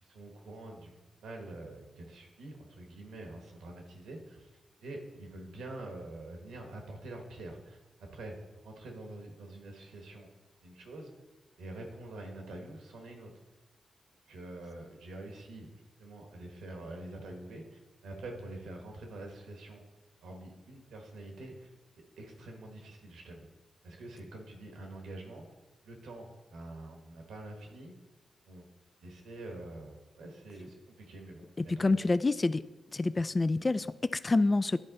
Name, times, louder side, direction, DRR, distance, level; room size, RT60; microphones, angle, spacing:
voice 1, 0.0-4.5 4.8-8.4 8.6-10.3 10.6-11.2 11.6-13.3 14.3-19.8 20.2-21.7 22.2-23.5 23.8-25.5 25.8-27.9 28.4-28.6 29.0-32.0, right 2 dB, 85° right, 2 dB, 1.2 m, -46 dB
voice 2, 31.6-32.7 32.9-34.8, left 3 dB, 35° left, 14 dB, 0.3 m, -27 dB
11.0 x 4.2 x 4.0 m, 1.1 s
supercardioid pair, 45°, 0 cm